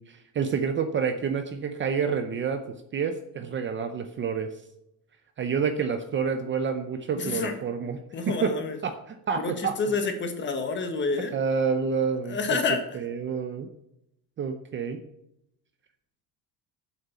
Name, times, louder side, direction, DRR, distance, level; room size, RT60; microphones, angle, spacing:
voice 1, 0.1-2.6 2.9-4.5 5.4-8.6 8.8-9.8 11.3-12.6 12.9-13.7 14.4-15.0, right 6 dB, 30° right, 8 dB, 0.6 m, -28 dB
voice 2, 7.2-7.5 8.1-8.8 9.4-11.3 12.3-12.8, left 4 dB, 25° left, 6 dB, 1.5 m, -28 dB
8.6 x 7.7 x 7.0 m, 0.82 s
cardioid pair, 175°, 42 cm